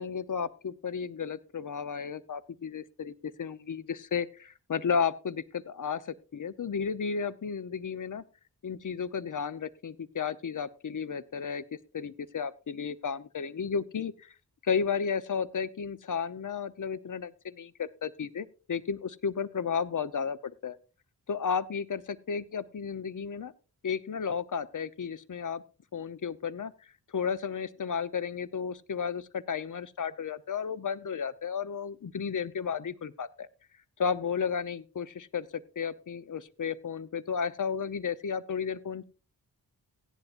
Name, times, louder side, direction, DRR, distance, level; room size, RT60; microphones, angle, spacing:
voice 1, 0.0-8.2 8.6-14.3 14.6-20.4 20.6-20.8 21.3-23.5 23.8-25.6 25.9-26.7 27.1-33.5 34.0-39.0, left 6 dB, 50° left, 17 dB, 0.8 m, -33 dB
16.0 x 10.5 x 2.5 m, 0.34 s
cardioid pair, 45°, 40 cm